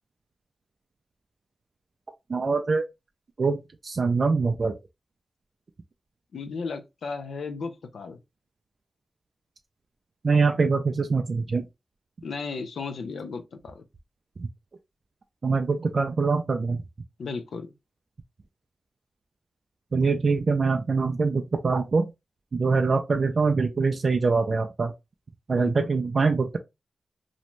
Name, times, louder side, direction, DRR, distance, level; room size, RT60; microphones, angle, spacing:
voice 1, 2.3-2.8 3.4-4.7 10.2-11.7 14.4-14.5 15.4-16.8 19.9-22.1 22.5-24.9 25.5-26.6, right 4 dB, 55° right, 0.3 m, -24 dB
voice 2, 6.3-8.2 12.2-13.8 17.2-17.7 25.5-25.7, left 4 dB, 90° left, 0.5 m, -34 dB
2.5 x 2.1 x 3.0 m
wide cardioid pair, 85°, 0 cm